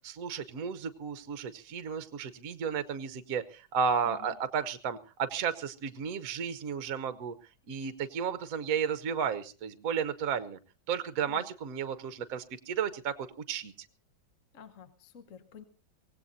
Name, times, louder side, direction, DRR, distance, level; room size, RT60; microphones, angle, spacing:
voice 1, 0.0-7.3 7.7-10.6 10.9-13.1 13.5-13.7, right 7 dB, 55° right, 10 dB, 1.2 m, -33 dB
voice 2, 4.0-4.4 11.3-11.4 14.5-15.6, left 7 dB, 50° left, 9 dB, 1.1 m, -50 dB
24.0 x 17.5 x 2.7 m, 0.35 s
omnidirectional pair, 2.2 m